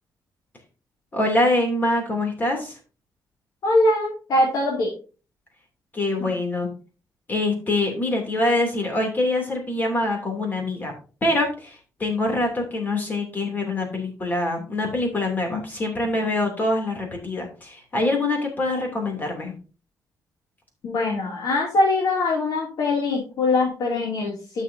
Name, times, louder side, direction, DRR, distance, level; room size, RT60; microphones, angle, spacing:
voice 1, 1.1-2.8 5.9-6.7 7.3-10.9 11.2-19.5, left 2 dB, 25° left, 2 dB, 2.9 m, -24 dB
voice 2, 3.6-4.9 15.5-15.6 20.8-24.6, left 2 dB, 75° left, -3 dB, 2.7 m, -22 dB
12.5 x 6.2 x 2.7 m, 0.35 s
wide cardioid pair, 145°, 7 cm